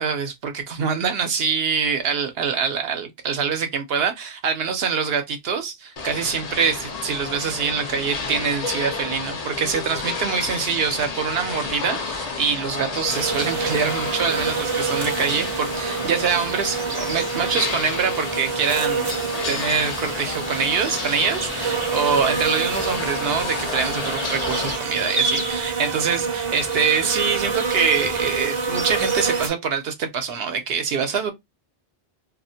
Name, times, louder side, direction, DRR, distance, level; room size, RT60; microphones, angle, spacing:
voice 1, 0.0-19.1 19.5-31.3, right 6 dB, 75° right, 0.8 m, -24 dB
sound 1, 6.0-24.8, left 4 dB, 50° left, 0.5 m, -31 dB
sound 2, 13.1-29.5, right 4 dB, 40° right, 0.6 m, -27 dB
2.4 x 2.1 x 2.6 m
omnidirectional pair, 1.0 m